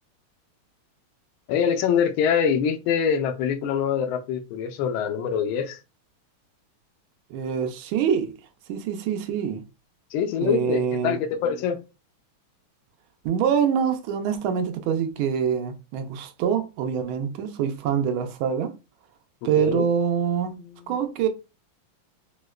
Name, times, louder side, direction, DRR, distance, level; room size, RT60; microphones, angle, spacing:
voice 1, 1.5-5.8 10.1-11.8 19.6-19.9 20.6-21.0, left 7 dB, 85° left, 1.4 m, -24 dB
voice 2, 7.3-8.3 8.7-9.6 10.4-11.2 13.2-18.7 19.4-20.6 20.9-21.3, right 8 dB, 85° right, 1.4 m, -25 dB
4.8 x 2.1 x 2.3 m
omnidirectional pair, 2.2 m